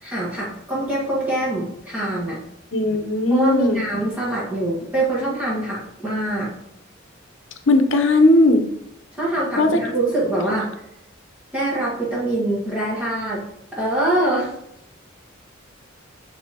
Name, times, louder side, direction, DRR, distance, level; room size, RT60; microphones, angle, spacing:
voice 1, 0.0-2.4 3.3-6.5 9.1-10.7 11.5-13.4 13.7-14.5, right 1 dB, 5° right, -8 dB, 1.5 m, -24 dB
voice 2, 2.7-3.8 7.7-8.7 9.6-9.8 10.4-10.6, left 2 dB, 70° left, 6 dB, 0.7 m, -17 dB
7.2 x 5.5 x 2.9 m, 0.78 s
head